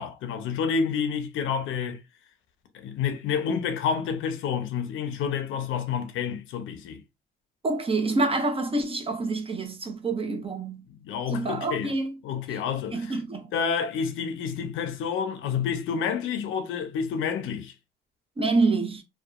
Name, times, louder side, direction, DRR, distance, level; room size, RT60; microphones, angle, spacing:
voice 1, 0.0-2.0 2.7-7.0 10.9-11.9 12.2-13.2 13.5-17.7, left 6 dB, 80° left, 0.5 m, -29 dB
voice 2, 7.6-10.8 11.3-12.1 12.9-13.5 18.4-19.0, right 3 dB, 30° right, 0.7 m, -27 dB
2.8 x 2.2 x 2.3 m
cardioid pair, 90°, 20 cm